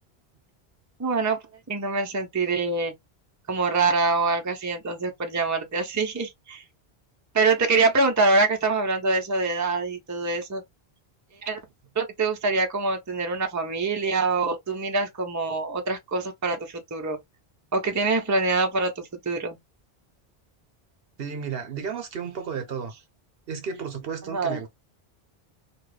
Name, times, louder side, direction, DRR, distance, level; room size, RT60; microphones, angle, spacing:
voice 1, 1.0-1.4 1.7-2.9 3.5-6.6 7.3-10.6 11.4-11.6 12.0-17.2 17.7-19.6 24.2-24.6, right 3 dB, 20° right, 0.6 m, -25 dB
voice 2, 21.2-22.9 23.5-24.7, right 6 dB, 70° right, 1.0 m, -33 dB
2.9 x 2.3 x 3.2 m
omnidirectional pair, 1.1 m